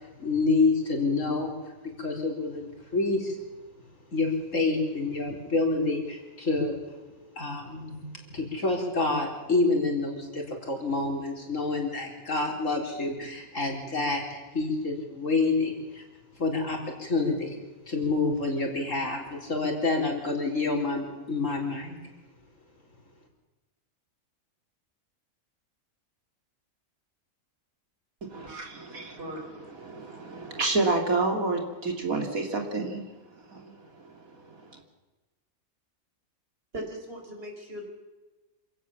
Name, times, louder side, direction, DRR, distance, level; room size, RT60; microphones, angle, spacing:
voice 1, 0.2-1.6 2.0-3.4 4.1-6.8 7.4-16.0 16.4-17.6 17.9-22.0, left 3 dB, 65° left, 1 dB, 4.4 m, -28 dB
voice 2, 28.3-33.0 33.5-34.8, right 3 dB, 85° right, 2 dB, 3.4 m, -30 dB
voice 3, 36.7-37.9, right 1 dB, 45° right, 2 dB, 5.0 m, -38 dB
27.0 x 16.5 x 7.3 m, 1.2 s
omnidirectional pair, 1.4 m